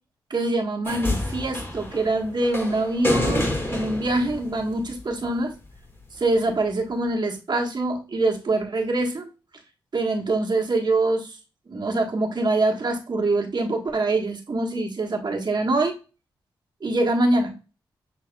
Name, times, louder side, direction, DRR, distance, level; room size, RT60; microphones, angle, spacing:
voice 1, 0.3-5.5 6.1-9.3 9.9-11.4 11.7-16.0 16.8-17.5, right 2 dB, 50° right, 2 dB, 1.4 m, -24 dB
sound 1, 0.8-5.2 6.3-6.4, left 1 dB, 25° left, 1.8 m, -28 dB
6.6 x 3.3 x 2.3 m, 0.31 s
supercardioid pair, 40°, 9 cm